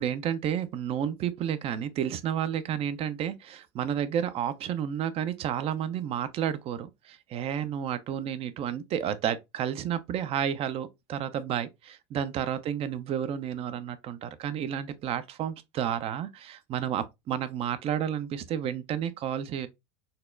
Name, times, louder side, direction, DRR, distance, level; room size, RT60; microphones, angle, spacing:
voice 1, 0.0-19.7, right 9 dB, 40° right, 0.4 m, -31 dB
4.1 x 2.1 x 2.4 m
supercardioid pair, 105°, 15 cm